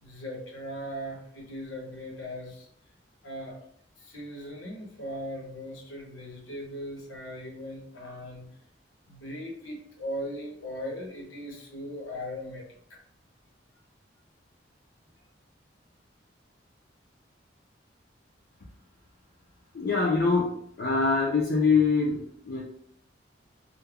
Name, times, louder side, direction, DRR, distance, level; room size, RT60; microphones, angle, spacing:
voice 1, 0.0-2.7 3.2-3.6 4.0-8.5 9.1-13.0, equal, 80° left, 0 dB, 0.8 m, -39 dB
voice 2, 19.7-22.6, left 4 dB, 55° left, -3 dB, 0.4 m, -24 dB
2.3 x 2.0 x 3.4 m, 0.65 s
head